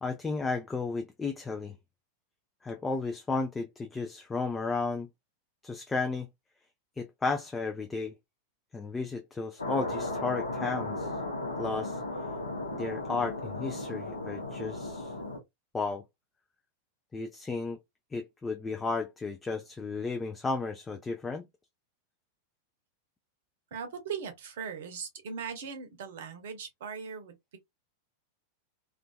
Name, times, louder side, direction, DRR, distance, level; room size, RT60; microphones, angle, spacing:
voice 1, 0.0-1.8 2.6-5.1 5.6-6.3 7.0-8.1 8.7-11.1 11.6-12.0 12.7-15.1 15.7-16.0 17.1-17.8 18.1-21.4, left 3 dB, 15° left, 0.3 m, -33 dB
sound 1, 9.6-15.4, left 2 dB, 80° left, 0.7 m, -35 dB
voice 2, 23.7-27.6, right 6 dB, 55° right, 0.7 m, -39 dB
2.4 x 2.3 x 2.2 m
figure-of-eight pair, 90°, 0 cm